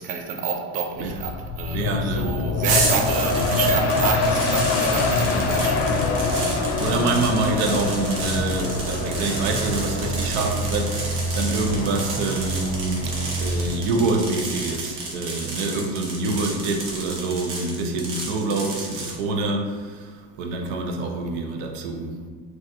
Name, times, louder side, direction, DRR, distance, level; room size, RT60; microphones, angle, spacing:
voice 1, 0.0-6.1, right 6 dB, 25° right, 3 dB, 0.3 m, -28 dB
sound 1, 1.0-14.3 14.7-14.8, left 4 dB, 50° left, 0.4 m, -26 dB
voice 2, 1.7-2.5 3.9-4.1 6.4-22.2, right 3 dB, 85° right, 3 dB, 0.6 m, -26 dB
sound 2, 2.6-19.2, right 2 dB, 70° right, 1.0 m, -32 dB
sound 3, 8.2-13.7, right 2 dB, 20° left, 1.0 m, -29 dB
3.9 x 2.4 x 2.6 m, 1.5 s
supercardioid pair, 105°, 32 cm